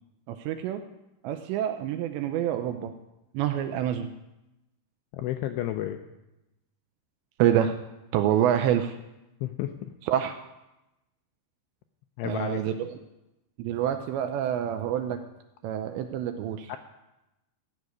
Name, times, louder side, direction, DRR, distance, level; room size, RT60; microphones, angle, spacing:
voice 1, 0.3-0.8 1.2-2.9 3.3-4.1 7.4-7.8 8.1-8.9 10.0-10.4 12.2-13.0 13.6-15.2 15.6-16.7, right 10 dB, 80° right, 7 dB, 2.6 m, -27 dB
voice 2, 5.1-6.0 9.4-9.9 12.2-12.6 16.7-16.8, left 13 dB, 85° left, 7 dB, 2.4 m, -31 dB
15.5 x 6.4 x 9.4 m, 0.97 s
omnidirectional pair, 5.5 m